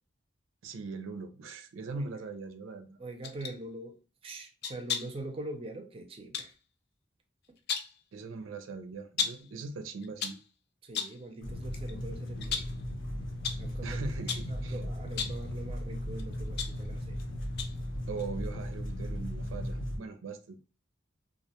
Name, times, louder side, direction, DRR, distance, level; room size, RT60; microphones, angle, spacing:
voice 1, 0.6-3.0 8.1-10.4 13.8-14.8 18.1-20.6, right 4 dB, 90° right, 0.4 m, -40 dB
voice 2, 3.0-4.0 4.2-6.5 10.8-12.7 13.6-14.0 14.5-17.2, right 2 dB, 30° right, 0.4 m, -43 dB
sound 1, 3.2-3.6 4.6-5.2 6.3-6.5 7.4-8.0 9.2-9.5 10.0-10.5 10.9-11.3 11.7-11.9 12.4-12.8 13.4-13.7 14.3-14.6 15.1-15.5 16.2-17.2 17.6-17.9 18.2-18.3, left 6 dB, 55° left, 0.4 m, -35 dB
sound 2, 11.4-20.0, equal, 80° left, 0.8 m, -36 dB
2.4 x 2.1 x 2.8 m
head